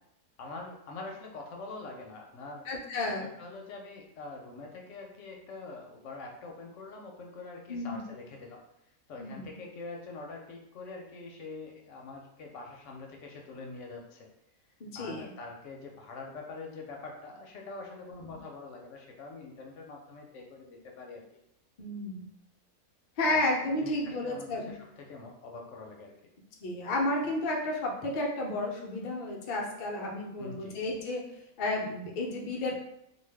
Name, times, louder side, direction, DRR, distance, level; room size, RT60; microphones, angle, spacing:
voice 1, 0.4-2.7 3.0-8.6 9.1-14.3 14.9-21.2 23.2-23.5 23.8-26.1 30.4-30.8, left 3 dB, 65° left, 1 dB, 0.8 m, -44 dB
voice 2, 2.6-3.3 7.7-8.0 9.2-9.6 14.8-15.3 18.2-18.3 21.8-22.3 23.2-24.7 26.6-31.2 31.6-32.8, left 2 dB, 85° left, -1 dB, 0.4 m, -32 dB
2.5 x 2.2 x 3.3 m, 0.78 s
omnidirectional pair, 1.6 m